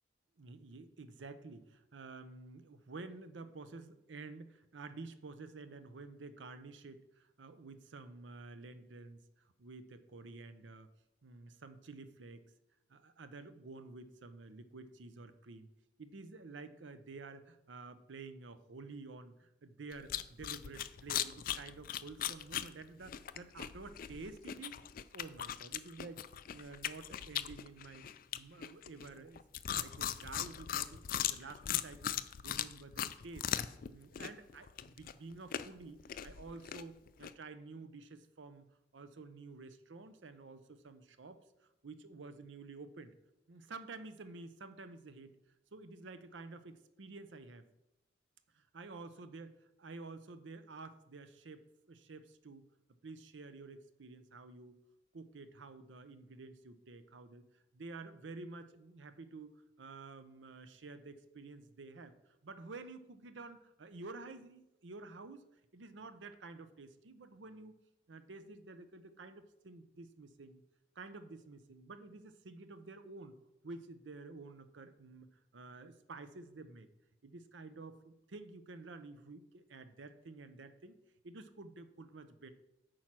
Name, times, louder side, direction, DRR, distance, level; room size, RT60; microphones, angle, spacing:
voice 1, 0.4-9.2 9.6-10.9 11.2-12.4 12.9-15.7 16.0-24.8 25.1-26.2 26.5-28.1 28.3-29.4 29.7-32.1 32.4-33.5 33.9-38.6 38.9-41.4 41.8-43.1 43.5-45.3 45.7-47.6 48.5-49.5 49.8-52.6 53.0-54.8 55.1-57.4 57.7-62.1 62.4-65.4 65.7-67.8 68.1-70.6 71.0-73.4 73.6-76.9 77.2-81.0 81.2-82.5, right 3 dB, 85° right, 11 dB, 0.7 m, -50 dB
sound 1, 19.9-33.9 34.1-37.3, left 10 dB, 50° left, 0.3 m, -39 dB
8.7 x 4.6 x 6.0 m, 0.91 s
head